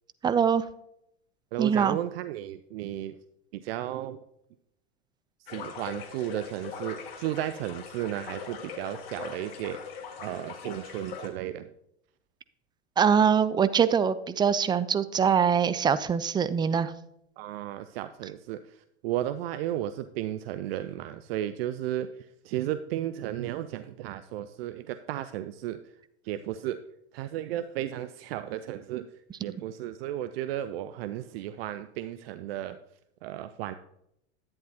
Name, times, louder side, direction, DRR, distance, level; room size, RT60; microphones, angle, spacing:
voice 1, 0.2-0.6 1.6-2.0 13.0-16.9, right 7 dB, 15° right, 13 dB, 0.4 m, -23 dB
voice 2, 1.5-3.2 3.5-4.2 5.5-11.7 17.4-25.9 26.2-26.8 27.1-29.1 29.4-32.8 33.2-33.7, right 12 dB, 60° right, 11 dB, 0.6 m, -34 dB
sound 1, 5.5-11.3, left 6 dB, 60° left, 1.7 m, -41 dB
11.0 x 9.0 x 2.9 m, 0.78 s
hypercardioid pair, 95°, 33 cm